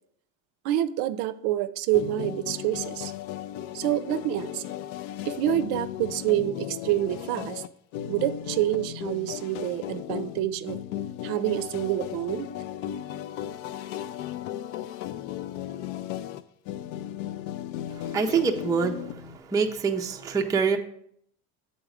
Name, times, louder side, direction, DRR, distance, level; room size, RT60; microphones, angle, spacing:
voice 1, 0.6-3.1 3.7-4.6 5.3-7.6 8.1-10.8 11.2-12.5, right 13 dB, 60° right, 14 dB, 0.5 m, -27 dB
sound 1, 1.9-19.4, left 11 dB, 70° left, 0.5 m, -36 dB
voice 2, 17.9-20.8, right 5 dB, 10° right, 3 dB, 0.4 m, -26 dB
7.8 x 4.0 x 4.8 m, 0.68 s
supercardioid pair, 110°, 44 cm